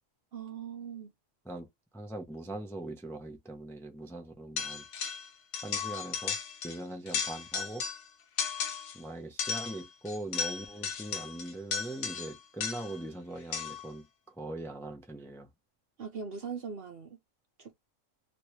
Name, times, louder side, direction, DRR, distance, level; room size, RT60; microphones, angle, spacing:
voice 1, 0.3-1.1 16.0-17.2 17.6-17.8, right 6 dB, 50° right, 0.9 m, -40 dB
voice 2, 1.4-4.9 5.6-6.4 6.6-7.8 8.9-15.5, right 1 dB, 5° left, 0.5 m, -41 dB
sound 1, 4.6-5.3 5.5-6.8 7.1-8.1 8.4-9.0 9.4-13.0 13.5-13.9, left 6 dB, 90° left, 1.1 m, -35 dB
3.1 x 3.0 x 3.0 m
omnidirectional pair, 1.4 m